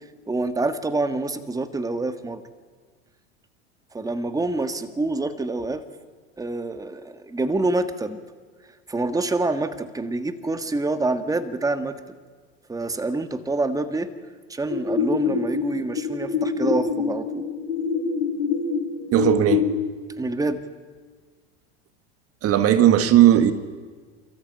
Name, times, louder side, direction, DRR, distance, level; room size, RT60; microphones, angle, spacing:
voice 1, 0.3-2.4 3.9-5.8 6.4-8.2 8.9-12.0 12.7-14.1 14.5-17.4 20.2-20.6, right 2 dB, 10° right, 10 dB, 1.5 m, -26 dB
sound 1, 14.7-19.7, left 6 dB, 85° left, 4.5 m, -25 dB
voice 2, 19.1-19.7 22.4-23.5, right 11 dB, 45° right, 12 dB, 1.5 m, -16 dB
29.0 x 14.0 x 8.9 m, 1.5 s
hypercardioid pair, 95°, 32 cm